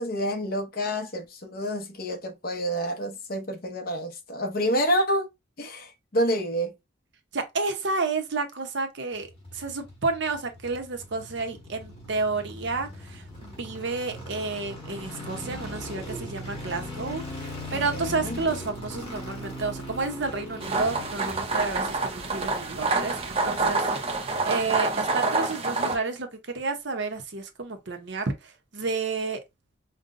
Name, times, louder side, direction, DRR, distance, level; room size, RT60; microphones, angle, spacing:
voice 1, 0.0-5.3 5.6-6.7 17.7-18.4, equal, 45° left, 0.8 m, -28 dB
voice 2, 7.3-9.3 9.5-23.9 24.2-29.4, right 4 dB, 60° right, 0.8 m, -31 dB
sound 1, 9.1-24.4 24.6-24.7, left 1 dB, 25° left, 1.4 m, -40 dB
sound 2, 20.6-26.0, right 3 dB, 30° right, 0.6 m, -27 dB
5.3 x 2.2 x 2.5 m
head